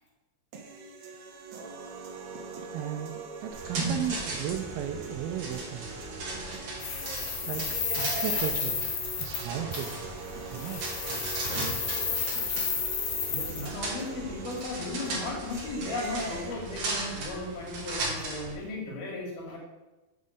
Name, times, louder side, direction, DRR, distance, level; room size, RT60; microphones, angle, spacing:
sound 1, 0.5-16.5, right 4 dB, 70° right, 1.7 m, -42 dB
voice 1, 2.7-5.9 7.4-8.9 9.2-10.0 10.5-10.8, right 9 dB, 85° right, 6 dB, 2.5 m, -35 dB
sound 2, 3.5-18.5, right 2 dB, 50° right, 2.5 m, -37 dB
sound 3, 6.8-9.4 9.7-10.0 10.5-13.7, left 6 dB, 65° left, 2.8 m, -32 dB
voice 2, 13.3-19.6, left 2 dB, 85° left, -2 dB, 3.9 m, -36 dB
7.6 x 5.2 x 6.5 m, 1.1 s
omnidirectional pair, 4.2 m